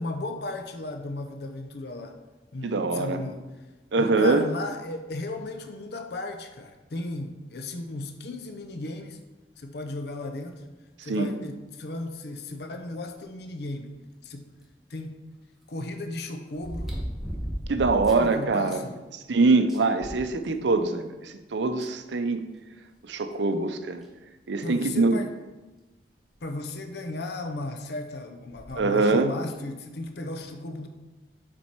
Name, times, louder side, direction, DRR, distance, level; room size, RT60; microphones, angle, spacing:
voice 1, 0.0-2.2 2.5-3.4 4.0-9.2 9.6-10.6 11.0-14.5 14.9-15.2 15.7-16.9 18.1-19.0 24.6-25.3 26.4-30.9, left 2 dB, 60° left, 6 dB, 0.6 m, -35 dB
voice 2, 2.6-3.2 3.9-4.5 11.0-11.3 17.7-18.8 19.3-22.4 23.0-24.0 24.5-25.2 28.8-29.3, right 3 dB, 75° right, 8 dB, 0.5 m, -23 dB
sound 1, 14.6-14.7 16.6-18.3 18.7-18.8 19.2-19.3 19.7-20.8 21.8-21.9 23.3-23.4 24.0-24.1 24.8-25.0 26.4-26.5 26.7-26.8 28.5-28.8 29.5-29.6, equal, ahead, 1.3 m, -35 dB
7.2 x 4.4 x 4.5 m, 1.1 s
head